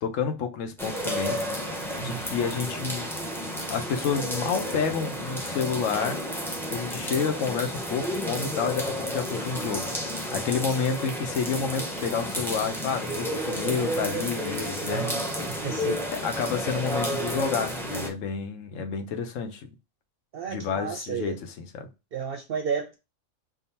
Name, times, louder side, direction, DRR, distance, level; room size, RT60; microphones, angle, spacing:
voice 1, 0.0-1.4 2.0-3.1 3.5-6.2 6.7-15.1 16.1-19.7 20.5-21.9, left 6 dB, 80° left, 1.1 m, -30 dB
sound 1, 0.8-18.1, equal, 5° left, 0.3 m, -31 dB
voice 2, 2.0-2.3 14.8-16.0 20.3-21.4 22.1-23.0, right 6 dB, 60° right, 0.7 m, -33 dB
3.7 x 2.2 x 4.1 m
omnidirectional pair, 1.3 m